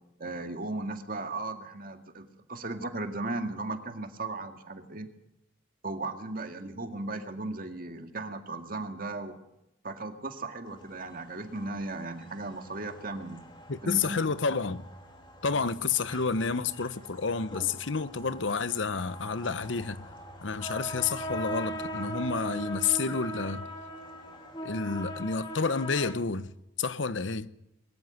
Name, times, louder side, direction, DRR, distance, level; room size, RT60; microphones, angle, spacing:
voice 1, 0.2-5.1 5.8-9.4 9.8-13.4 13.8-14.4 15.5-15.6, right 2 dB, 45° right, 2.0 m, -36 dB
sound 1, 10.7-26.1, equal, 25° left, 2.7 m, -41 dB
voice 2, 13.7-14.8 15.4-20.0 20.4-23.7 24.6-26.5 26.8-27.5, left 5 dB, 70° left, 0.9 m, -30 dB
22.5 x 14.0 x 9.2 m
head